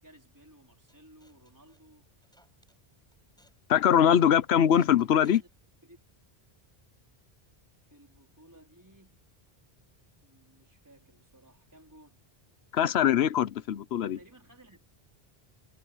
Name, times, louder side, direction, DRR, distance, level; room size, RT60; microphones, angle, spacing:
voice 1, 0.0-2.1 5.0-5.5 5.8-6.0 7.9-9.2 10.2-12.2 14.0-14.9, right 1 dB, 15° right, 4.6 m, -57 dB
sound 1, 0.9-2.8 3.1-3.6 3.9-4.3 4.7-6.3, equal, 5° left, 7.8 m, -64 dB
voice 2, 3.7-5.4 12.7-14.2, left 9 dB, 85° left, 1.0 m, -22 dB
omnidirectional pair, 1.1 m